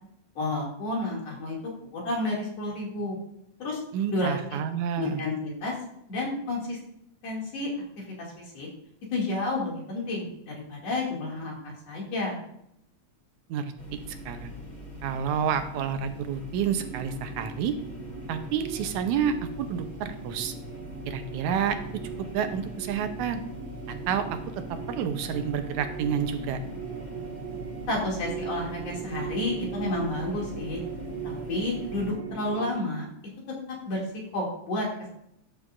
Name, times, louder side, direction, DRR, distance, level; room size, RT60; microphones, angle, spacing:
voice 1, 0.3-1.6 1.9-3.2 3.6-3.8 4.1-4.6 5.0-5.7 6.1-6.8 7.2-7.7 8.2-8.3 8.5-8.7 9.1-12.4 27.9-30.8 31.2-33.1 33.9-34.0 34.3-35.1, left 2 dB, 60° left, -3 dB, 3.3 m, -30 dB
voice 2, 3.9-5.2 13.5-14.0 14.3-14.5 15.0-17.8 18.3-20.5 21.1-21.8 22.3-23.4 23.9-24.4 24.9-26.6, right 8 dB, 90° right, 8 dB, 2.1 m, -29 dB
sound 1, 13.8-32.1, left 1 dB, 20° left, 1.6 m, -43 dB
sound 2, 16.7-32.7, right 6 dB, 65° right, 1.9 m, -39 dB
12.5 x 7.0 x 2.5 m, 0.75 s
omnidirectional pair, 3.3 m